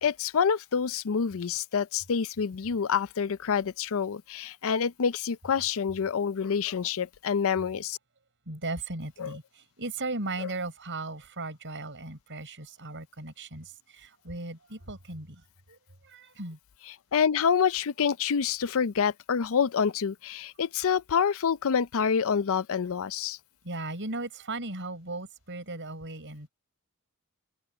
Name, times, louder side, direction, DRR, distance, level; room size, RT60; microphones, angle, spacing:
voice 1, 0.0-8.0 9.2-9.4 10.4-10.5 17.1-23.4, left 6 dB, 65° left, 0.5 m, -27 dB
voice 2, 8.5-15.8 16.0-16.6 23.6-26.5, right 2 dB, 55° right, 7.2 m, -37 dB
open air
head